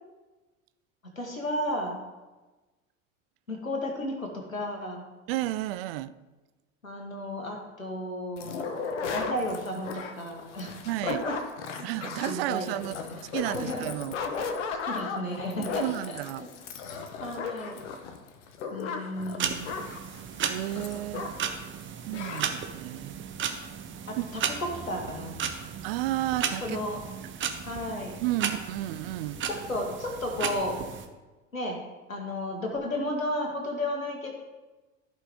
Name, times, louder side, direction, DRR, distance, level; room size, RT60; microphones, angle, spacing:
voice 1, 1.2-2.0 3.5-5.1 6.8-10.7 11.1-11.3 11.8-11.9 12.3-13.0 13.5-13.8 14.7-15.8 16.4-16.5 17.2-17.8 18.7-19.8 21.1-21.2 24.1-25.3 26.6-27.0 27.7-28.1 29.5-30.8 31.5-31.8 32.1-34.3, left 1 dB, 85° left, 1.8 m, -33 dB
voice 2, 5.3-6.1 10.8-11.2 11.8-13.0 13.3-14.1 15.6-16.5 20.5-21.3 22.1-23.3 24.2-24.3 25.8-26.8 28.2-29.4, right 15 dB, 50° right, 0.5 m, -32 dB
sound 1, 8.4-21.6 21.8-21.9 22.1-22.5, left 5 dB, 65° left, 1.1 m, -36 dB
sound 2, 19.4-31.1, right 7 dB, 30° right, 1.0 m, -35 dB
14.5 x 5.6 x 3.6 m
figure-of-eight pair, 75°, 39 cm